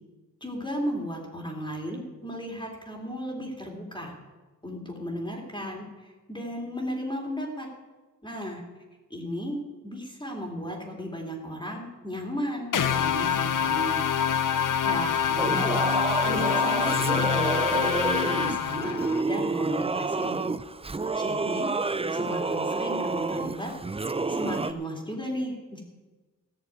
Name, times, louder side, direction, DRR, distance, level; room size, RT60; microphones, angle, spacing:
voice 1, 0.4-4.2 4.6-7.7 8.2-8.6 9.1-9.6 9.8-14.0 14.8-15.8 16.3-20.4 21.2-21.7 22.1-23.7 24.3-25.8, equal, 15° left, -1 dB, 2.6 m, -35 dB
sound 1, 12.7-19.2, left 8 dB, 60° left, 0.7 m, -26 dB
Singing / Musical instrument, 15.4-24.7, right 3 dB, 15° right, 0.4 m, -29 dB
15.0 x 6.5 x 9.2 m, 1.2 s
wide cardioid pair, 100°, 35 cm